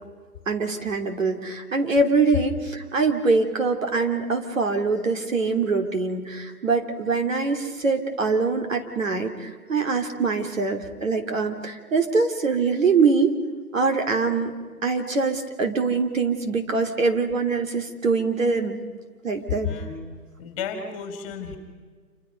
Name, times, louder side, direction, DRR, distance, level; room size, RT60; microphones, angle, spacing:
voice 1, 0.5-13.4 13.7-14.5 14.8-18.8 19.2-19.7, right 4 dB, 60° right, 4 dB, 3.3 m, -23 dB
voice 2, 19.6-19.9 20.4-21.6, left 6 dB, 20° left, 5 dB, 3.5 m, -32 dB
28.0 x 27.5 x 5.4 m, 1.5 s
figure-of-eight pair, 145°, 45 cm